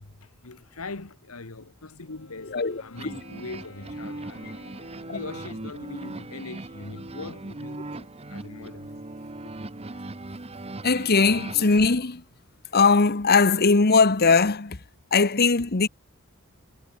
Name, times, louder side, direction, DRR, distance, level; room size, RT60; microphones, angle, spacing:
voice 1, 0.0-4.5 5.1-9.0, left 3 dB, 85° left, 1.6 m, -41 dB
Wind instrument woodwind instrument, 2.0-6.6, left 2 dB, 65° left, 6.7 m, -52 dB
voice 2, 2.4-2.8 5.1-5.2 10.8-12.2 12.7-14.8 15.1-15.9, left 4 dB, 45° left, 1.1 m, -20 dB
sound 1, 3.0-12.0, right 2 dB, 30° right, 1.0 m, -39 dB
head